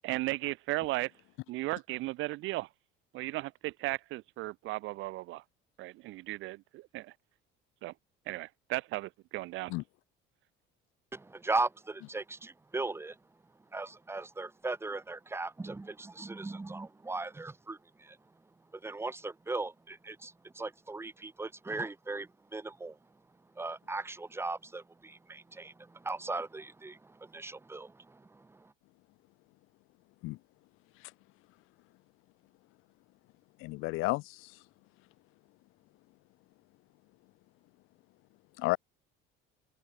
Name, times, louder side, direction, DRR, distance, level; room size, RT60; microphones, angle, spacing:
voice 1, 0.0-1.1 1.5-2.7 3.1-5.4 5.8-7.1 7.8-7.9 8.3-9.7, right 19 dB, 70° right, 5.4 m, -36 dB
voice 2, 11.1-13.2 13.7-18.2 18.7-23.0 23.6-28.7, right 3 dB, 10° right, 5.0 m, -38 dB
voice 3, 33.6-34.5 38.6-38.8, left 22 dB, 75° left, 4.3 m, -32 dB
open air
cardioid pair, 145°, 21 cm